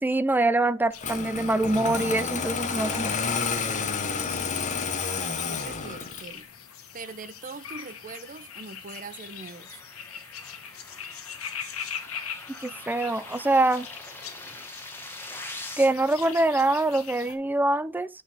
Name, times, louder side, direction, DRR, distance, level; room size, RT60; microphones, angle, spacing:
voice 1, 0.0-3.1 12.6-13.9 15.8-18.1, right 2 dB, 10° right, 0.3 m, -24 dB
sound 1, 0.9-17.3, left 8 dB, 90° left, 1.2 m, -42 dB
Engine starting, 1.0-6.4, left 5 dB, 35° left, 0.9 m, -30 dB
voice 2, 5.1-6.5 6.9-9.8, right 4 dB, 40° right, 0.7 m, -42 dB
sound 2, 7.0-15.9, left 1 dB, 10° left, 1.5 m, -44 dB
8.8 x 4.7 x 3.4 m
head